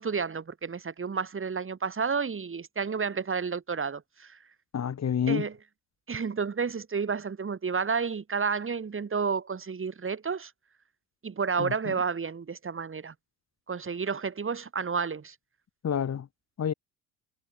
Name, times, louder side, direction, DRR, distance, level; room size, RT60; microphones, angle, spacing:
voice 1, 0.0-4.4 5.3-5.5 6.1-10.5 11.2-13.1 13.7-15.3, right 5 dB, 30° right, 4.3 m, -31 dB
voice 2, 4.7-5.5 11.6-11.9 15.8-16.3 16.6-16.7, left 8 dB, 35° left, 2.7 m, -28 dB
hypercardioid pair, 60°, 45 cm